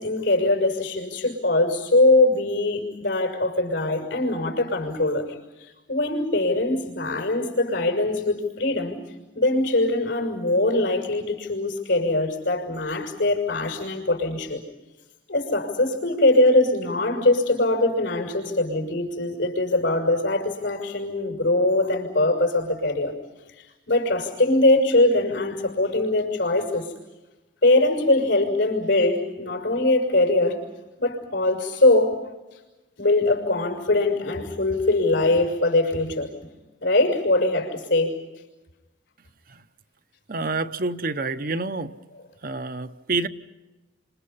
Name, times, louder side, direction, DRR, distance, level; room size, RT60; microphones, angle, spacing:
voice 1, 0.0-9.0 9.3-14.6 15.3-23.1 23.6-26.9 27.6-30.6 31.0-32.2 33.0-36.3 36.8-38.2, left 2 dB, 85° left, 6.1 m, -22 dB
voice 2, 40.3-42.0 42.4-43.3, right 3 dB, 50° right, 0.8 m, -28 dB
29.5 x 26.5 x 5.6 m
head